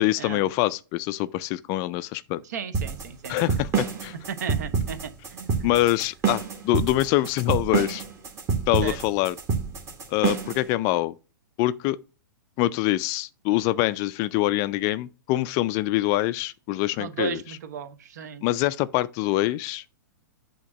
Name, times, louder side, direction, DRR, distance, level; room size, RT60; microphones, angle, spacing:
voice 1, 0.0-2.4 3.3-4.1 5.6-8.0 8.7-9.4 10.1-11.1 11.6-12.0 12.6-17.4 18.4-19.8, left 16 dB, 30° left, 0.3 m, -25 dB
voice 2, 2.4-3.6 4.3-5.7 8.8-9.0 17.0-18.4, right 7 dB, 55° right, 1.0 m, -35 dB
sound 1, 2.7-10.6, right 6 dB, 25° right, 1.5 m, -27 dB
8.3 x 2.9 x 6.0 m
figure-of-eight pair, 110°, 11 cm